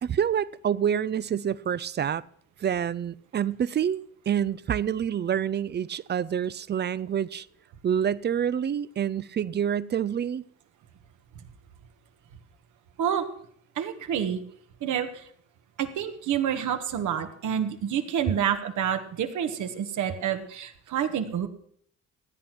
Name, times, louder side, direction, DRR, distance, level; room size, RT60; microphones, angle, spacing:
voice 1, 0.0-2.2 2.6-7.5 7.8-10.4, right 8 dB, 35° right, 0.5 m, -27 dB
voice 2, 13.7-14.4 14.8-15.3 15.8-21.5, right 9 dB, 75° right, 1.5 m, -28 dB
16.0 x 9.0 x 6.0 m
cardioid pair, 90°, 30 cm